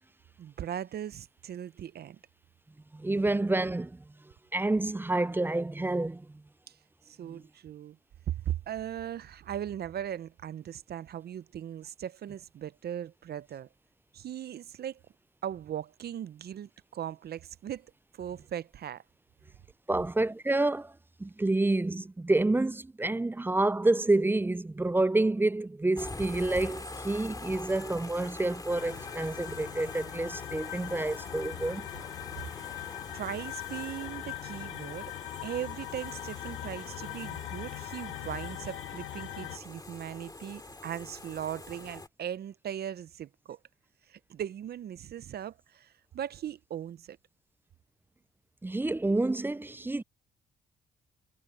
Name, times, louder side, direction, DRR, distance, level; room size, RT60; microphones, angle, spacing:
voice 1, 0.4-2.2 6.7-6.8 7.1-8.0 8.3-13.7 14.1-15.0 15.4-17.9 18.1-19.0 32.4-32.8 33.1-35.1 35.4-43.6 44.1-47.2, right 10 dB, 55° right, 0.6 m, -38 dB
voice 2, 2.9-4.0 4.5-6.3 19.9-20.9 21.2-31.9 48.6-50.0, right 2 dB, 10° right, 0.4 m, -28 dB
sound 1, 26.0-42.1, left 2 dB, 20° left, 2.3 m, -44 dB
sound 2, 28.7-39.6, left 16 dB, 85° left, 1.5 m, -41 dB
cardioid pair, 90°, 20 cm